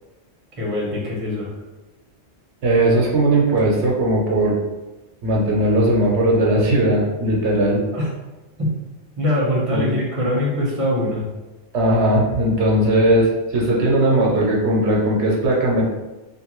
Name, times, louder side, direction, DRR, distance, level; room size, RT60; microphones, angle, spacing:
voice 1, 0.6-1.5 7.9-8.1 8.6-8.7 9.2-11.2, left 1 dB, 35° right, -5 dB, 0.8 m, -22 dB
voice 2, 2.6-4.5 5.2-7.8 9.7-9.9 11.7-15.8, right 1 dB, 75° right, -3 dB, 0.9 m, -18 dB
2.5 x 2.5 x 3.0 m, 1.1 s
omnidirectional pair, 1.2 m